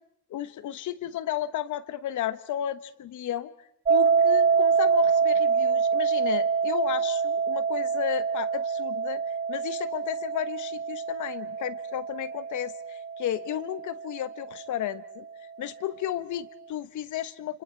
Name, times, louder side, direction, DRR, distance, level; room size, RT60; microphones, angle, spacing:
voice 1, 0.3-3.5 3.9-9.2 9.5-15.3 15.6-17.6, left 11 dB, 75° left, 14 dB, 1.2 m, -33 dB
sound 1, 3.9-14.8, right 6 dB, 25° right, 0.8 m, -26 dB
29.5 x 26.5 x 4.6 m, 0.76 s
cardioid pair, 90°, 30 cm